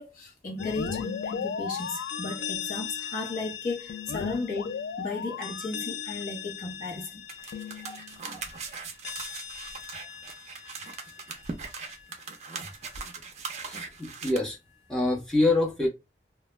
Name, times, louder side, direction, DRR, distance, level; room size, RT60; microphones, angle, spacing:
voice 1, 0.0-7.2, left 3 dB, 50° left, 0.8 m, -35 dB
sound 1, 0.6-12.1, left 7 dB, 80° left, 0.3 m, -37 dB
sound 2, 7.3-14.4, right 4 dB, 40° right, 0.4 m, -40 dB
voice 2, 13.6-14.6 14.9-15.9, left 2 dB, 5° left, 0.7 m, -26 dB
2.2 x 2.0 x 3.1 m
head